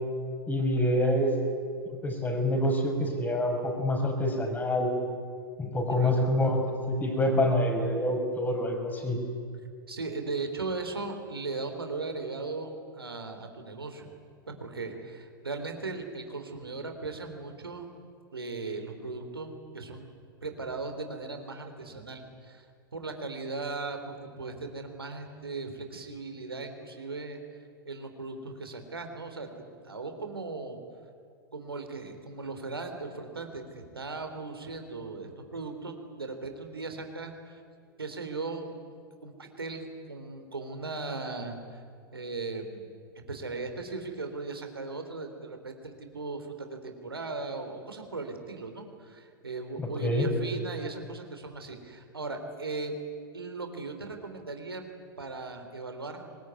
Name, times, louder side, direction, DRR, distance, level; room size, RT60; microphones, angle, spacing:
voice 1, 0.5-1.3 1.9-4.9 5.6-9.2 50.0-50.3, left 1 dB, 15° left, 4 dB, 5.5 m, -26 dB
voice 2, 9.9-14.1 14.5-17.9 18.3-20.1 20.4-22.7 22.9-27.4 27.9-29.5 29.8-30.8 31.5-37.6 38.0-41.8 42.1-42.9 43.3-52.9 53.3-54.9 55.2-56.3, right 3 dB, 85° right, 5 dB, 3.6 m, -38 dB
24.5 x 20.5 x 9.6 m, 2.2 s
figure-of-eight pair, 100°, 12 cm